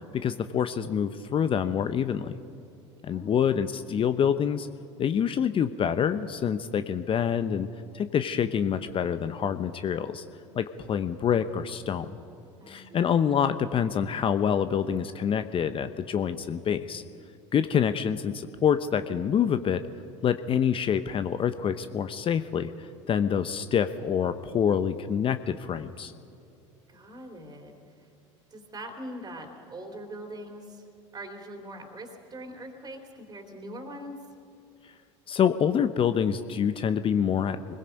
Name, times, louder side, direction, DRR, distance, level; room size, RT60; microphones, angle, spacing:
voice 1, 0.2-2.4 3.0-4.7 5.0-7.7 7.9-10.2 10.5-12.2 12.7-17.0 17.5-19.8 20.2-26.1 35.3-37.7, left 8 dB, 35° left, 11 dB, 0.8 m, -26 dB
voice 2, 3.1-3.5 12.6-13.1 26.9-28.1 28.5-30.9 31.1-34.2, right 1 dB, 25° right, 3 dB, 3.5 m, -42 dB
25.0 x 21.0 x 5.3 m, 2.6 s
hypercardioid pair, 75°, 16 cm